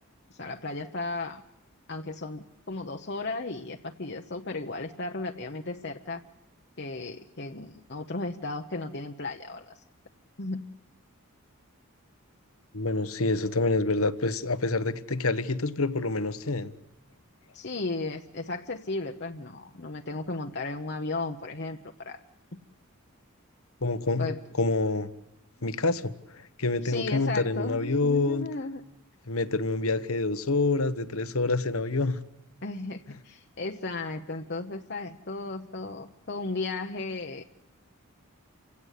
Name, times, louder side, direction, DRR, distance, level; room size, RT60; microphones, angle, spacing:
voice 1, 0.3-1.4 1.9-6.2 6.8-9.8 10.4-10.6 17.5-22.2 24.2-24.4 26.8-28.8 32.6-37.4, left 3 dB, 50° left, 3 dB, 1.0 m, -35 dB
voice 2, 12.7-16.7 23.8-24.3 24.6-25.1 25.6-28.5 29.3-32.2, left 3 dB, 75° left, 13 dB, 1.3 m, -27 dB
28.5 x 17.0 x 8.4 m, 0.92 s
head